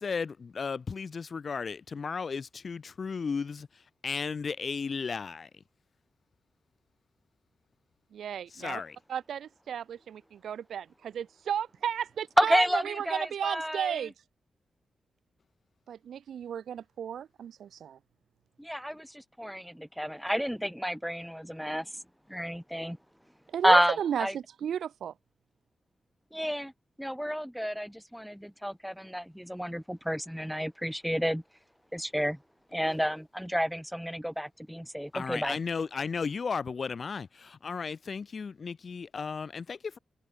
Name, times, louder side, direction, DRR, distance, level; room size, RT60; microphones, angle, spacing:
voice 1, 0.0-3.7 4.0-5.5 8.5-9.0 35.1-40.0, left 5 dB, 55° left, 2.0 m, -34 dB
voice 2, 8.1-8.8 9.1-14.1 15.9-18.0 23.5-25.1, right 9 dB, 80° right, 1.9 m, -34 dB
voice 3, 12.4-14.0 18.6-21.9 22.3-23.0 23.6-24.3 26.3-26.7 27.0-31.4 31.9-32.4 32.7-35.6, equal, ahead, 1.8 m, -30 dB
cardioid pair, 65°, 0 cm